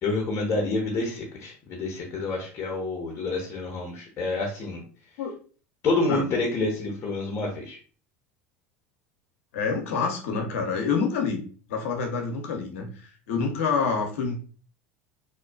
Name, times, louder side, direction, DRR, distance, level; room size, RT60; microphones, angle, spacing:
voice 1, 0.0-4.8 5.8-7.8, left 3 dB, 40° left, -1 dB, 0.8 m, -28 dB
voice 2, 9.5-14.5, left 5 dB, 80° left, 3 dB, 0.6 m, -27 dB
2.5 x 2.2 x 2.3 m, 0.40 s
hypercardioid pair, 85°, 7 cm